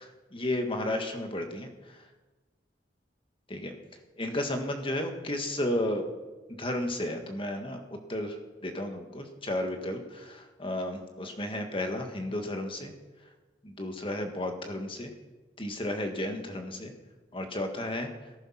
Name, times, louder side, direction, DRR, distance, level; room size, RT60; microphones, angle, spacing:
voice 1, 0.3-2.0 3.5-3.7 4.2-6.1 6.6-7.8 8.1-8.4 8.6-12.9 13.6-15.1 15.6-16.9 17.3-18.1, left 1 dB, 30° left, 5 dB, 1.7 m, -33 dB
18.0 x 11.0 x 5.9 m, 1.2 s
head